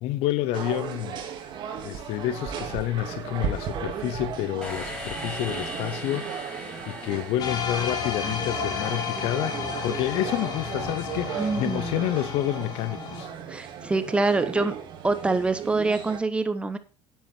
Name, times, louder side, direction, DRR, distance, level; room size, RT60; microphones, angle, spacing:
voice 1, 0.0-1.2 1.8-13.3, left 14 dB, 60° left, 0.6 m, -29 dB
sound 1, 0.5-16.2, right 8 dB, 40° right, 2.0 m, -36 dB
sound 2, 4.6-8.4, left 1 dB, 10° left, 5.0 m, -39 dB
sound 3, 7.4-13.2, left 6 dB, 35° left, 1.7 m, -32 dB
voice 2, 11.4-12.1 13.5-14.7 15.0-16.8, right 3 dB, 10° right, 0.8 m, -25 dB
9.2 x 8.9 x 4.3 m
cardioid pair, 155°, 12 cm